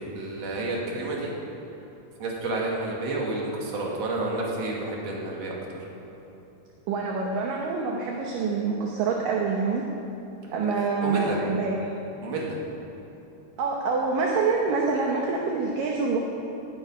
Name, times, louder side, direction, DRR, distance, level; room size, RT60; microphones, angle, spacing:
voice 1, 0.1-1.3 2.2-5.8 11.0-11.4 12.2-12.6, right 2 dB, 45° right, -3 dB, 2.8 m, -30 dB
voice 2, 6.9-9.8 10.5-11.9 13.6-16.2, right 4 dB, 70° right, -1 dB, 2.2 m, -26 dB
18.0 x 9.7 x 5.6 m, 3.0 s
omnidirectional pair, 4.9 m